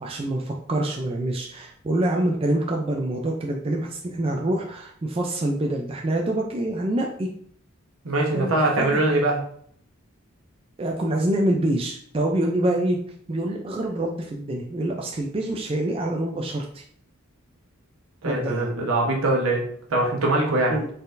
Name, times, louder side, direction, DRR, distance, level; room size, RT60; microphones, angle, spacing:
voice 1, 0.0-7.3 8.3-8.9 10.8-13.0 13.3-16.8 18.2-18.7 20.7-20.9, right 1 dB, 25° right, 0 dB, 0.4 m, -26 dB
voice 2, 8.0-9.4 18.2-20.8, right 2 dB, 75° right, -1 dB, 1.1 m, -22 dB
4.1 x 3.8 x 2.6 m, 0.62 s
head